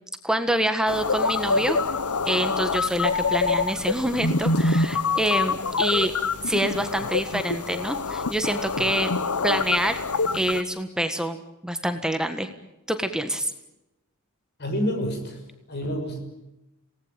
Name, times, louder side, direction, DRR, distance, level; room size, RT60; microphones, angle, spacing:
voice 1, 0.2-1.8 2.2-6.1 6.4-9.1 9.4-10.0 10.3-11.4 11.6-12.5 12.9-13.5, right 1 dB, 5° right, 8 dB, 1.5 m, -26 dB
sound 1, 0.9-10.6, left 4 dB, 85° left, 1.2 m, -26 dB
voice 2, 14.6-15.4 15.7-16.2, equal, 50° left, 4 dB, 6.5 m, -28 dB
27.5 x 19.0 x 9.1 m, 0.92 s
head